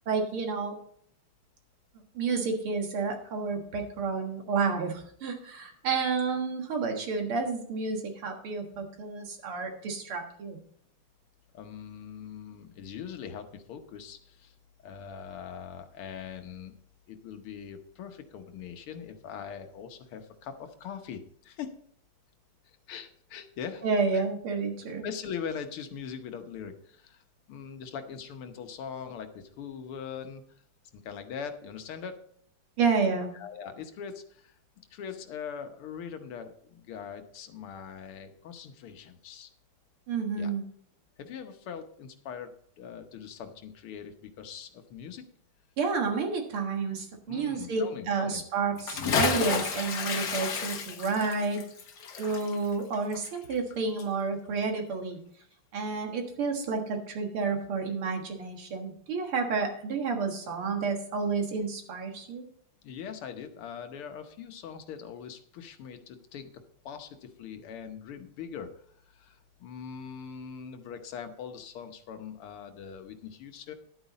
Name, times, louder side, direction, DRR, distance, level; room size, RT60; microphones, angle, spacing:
voice 1, 0.1-0.8 2.2-10.6 23.8-25.1 32.8-33.3 40.1-40.7 45.8-51.6 52.2-55.2 55.7-62.4, right 4 dB, 80° right, 3 dB, 2.5 m, -30 dB
voice 2, 11.5-14.5 14.8-16.7 17.1-21.7 22.7-23.8 24.1-24.3 25.0-27.2 27.5-30.4 30.9-32.2 33.3-34.6 34.9-39.5 40.4-40.5 41.2-42.5 42.8-45.3 47.3-48.4 62.8-66.5 66.9-68.8 69.1-73.7, left 7 dB, 85° left, 7 dB, 1.9 m, -41 dB
Bathtub (filling or washing) / Splash splatter, 48.7-53.7 54.0-54.1, left 6 dB, 55° left, 1.6 m, -31 dB
11.0 x 9.0 x 4.1 m, 0.63 s
omnidirectional pair, 2.4 m